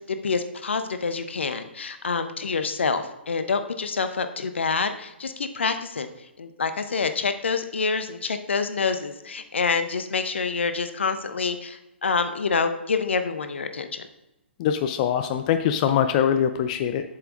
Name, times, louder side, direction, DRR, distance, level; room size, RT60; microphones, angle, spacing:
voice 1, 0.0-6.1 6.4-14.1, left 5 dB, 70° left, 9 dB, 0.8 m, -27 dB
voice 2, 14.6-17.0, left 9 dB, 35° left, 8 dB, 0.5 m, -23 dB
8.1 x 7.6 x 3.7 m, 0.94 s
figure-of-eight pair, 125°, 6 cm